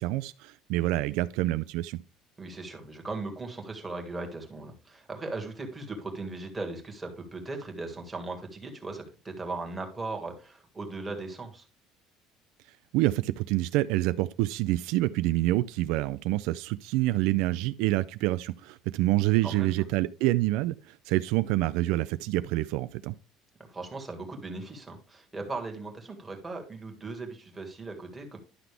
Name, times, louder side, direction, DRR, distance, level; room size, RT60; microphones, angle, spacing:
voice 1, 0.0-2.0 12.9-23.1, right 17 dB, 75° right, 0.4 m, -27 dB
voice 2, 2.4-11.7 19.4-19.8 23.7-28.4, right 3 dB, 10° right, 1.8 m, -38 dB
11.0 x 5.9 x 3.4 m
cardioid pair, 160°, 0 cm